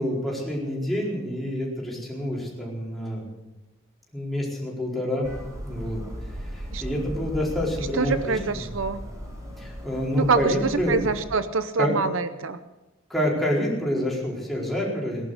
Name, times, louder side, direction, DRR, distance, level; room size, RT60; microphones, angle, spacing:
voice 1, 0.0-3.2 4.1-5.3 5.6-6.0 6.5-8.6 9.6-11.0 11.8-11.9 13.1-15.3, left 1 dB, ahead, -4 dB, 4.5 m, -27 dB
sound 1, 5.2-11.3, equal, 15° right, 4.3 m, -37 dB
voice 2, 7.9-9.0 10.2-12.6, right 4 dB, 70° right, 11 dB, 0.8 m, -25 dB
18.0 x 11.5 x 6.7 m, 1.0 s
head